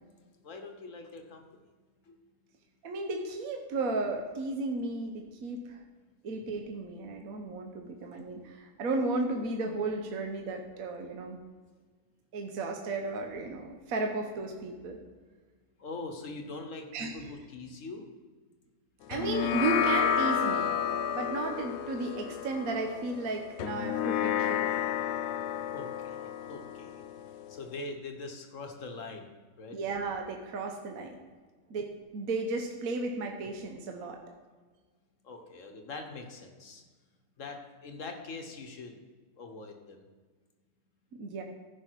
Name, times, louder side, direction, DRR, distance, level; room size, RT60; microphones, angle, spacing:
voice 1, 0.4-1.5 2.1-2.2 15.8-18.1 25.7-26.2 26.5-27.0 27.5-29.2 29.6-29.8 35.2-36.8 37.4-38.9 39.4-40.0, left 3 dB, 55° left, 4 dB, 1.4 m, -42 dB
voice 2, 2.8-5.8 6.2-11.4 12.3-15.0 16.9-17.3 19.1-20.7 21.1-24.7 29.7-31.2 31.7-34.2 41.1-41.4, right 3 dB, 60° right, 2 dB, 1.3 m, -34 dB
sound 1, 19.1-27.8, left 8 dB, 90° left, 1.2 m, -31 dB
14.5 x 5.5 x 4.5 m, 1.4 s
omnidirectional pair, 1.8 m